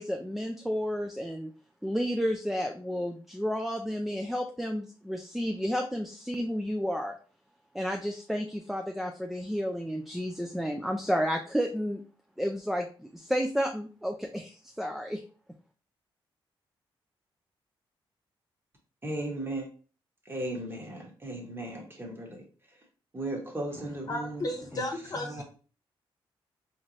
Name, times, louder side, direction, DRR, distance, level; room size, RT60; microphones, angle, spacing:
voice 1, 0.0-1.5 1.8-7.2 7.7-12.0 12.4-15.2, equal, ahead, 3 dB, 0.4 m, -31 dB
voice 2, 19.0-19.7 20.2-22.4 23.1-24.5 24.7-24.8 25.2-25.4, right 1 dB, 25° right, 0 dB, 1.2 m, -36 dB
voice 3, 23.7-25.4, left 1 dB, 40° left, 3 dB, 1.0 m, -35 dB
3.7 x 3.1 x 2.6 m, 0.38 s
cardioid pair, 90°, 9 cm